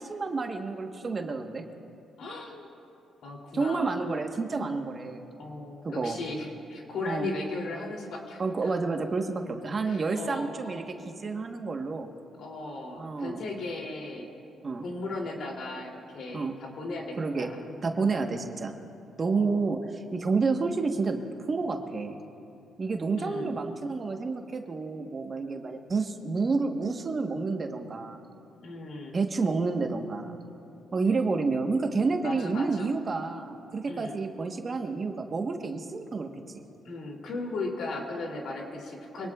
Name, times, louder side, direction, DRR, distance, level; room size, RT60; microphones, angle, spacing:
voice 1, 0.0-1.6 3.5-5.2 6.0-6.2 7.0-7.3 8.4-12.1 13.0-13.4 14.6-14.9 16.3-16.6 17.2-17.5 17.8-18.7 19.2-21.2 21.5-22.2 22.8-28.2 29.1-30.4 30.9-36.3 36.5-36.6, right 4 dB, 35° right, 4 dB, 1.3 m, -29 dB
voice 2, 2.2-2.7 3.2-4.1 5.3-8.7 9.8-10.9 12.4-14.3 14.8-17.6 17.9-18.3 19.2-19.7 23.2-23.6 28.6-29.2 32.2-32.9 33.9-34.2 36.8-39.3, left 2 dB, 70° left, 0 dB, 3.0 m, -37 dB
25.5 x 19.0 x 2.4 m, 2.6 s
cardioid pair, 90°, 0 cm